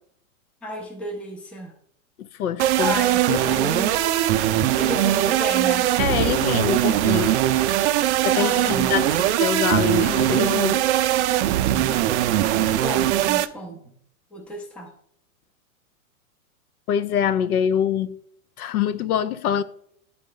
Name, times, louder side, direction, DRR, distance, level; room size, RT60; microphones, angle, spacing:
voice 1, 0.6-1.7 2.8-4.1 4.7-5.9 8.4-8.9 12.5-13.8 14.3-14.9, equal, 5° left, 0.4 m, -32 dB
voice 2, 2.2-3.0 3.3-3.8 6.0-7.4 8.2-10.8 16.9-18.1 18.6-19.6, left 9 dB, 80° left, 0.7 m, -25 dB
sound 1, 2.6-13.5, right 13 dB, 55° right, 0.5 m, -21 dB
10.5 x 4.2 x 3.8 m
hypercardioid pair, 140°, 43 cm